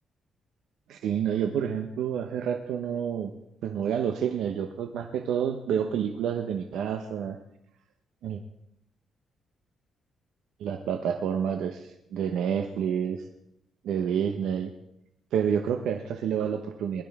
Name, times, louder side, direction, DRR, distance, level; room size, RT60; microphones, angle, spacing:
voice 1, 0.9-3.3 3.6-7.4 8.2-8.4 10.6-13.3 13.8-14.7 15.3-17.0, right 8 dB, 80° right, 5 dB, 0.9 m, -29 dB
20.5 x 12.0 x 3.6 m, 0.80 s
cardioid pair, 170°, 0 cm